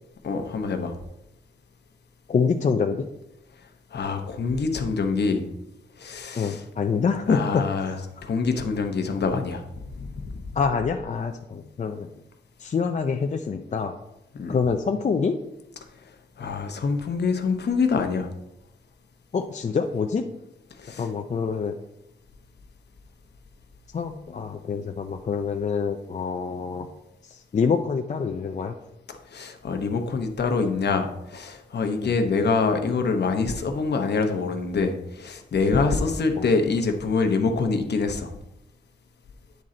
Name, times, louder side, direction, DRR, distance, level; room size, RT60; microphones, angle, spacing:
voice 1, 0.2-0.9 3.9-5.4 6.0-6.6 7.3-8.0 8.2-10.3 14.3-14.6 16.4-18.3 20.8-21.1 29.3-38.3, left 4 dB, 60° left, 5 dB, 0.8 m, -25 dB
voice 2, 2.3-3.1 6.4-8.2 10.6-12.1 12.6-13.9 14.5-15.4 19.3-20.3 20.9-21.8 23.9-26.9 27.2-28.7 32.0-32.1 36.4-36.5, left 5 dB, 40° left, 4 dB, 0.4 m, -26 dB
9.3 x 3.8 x 4.2 m, 0.87 s
wide cardioid pair, 125°, 19 cm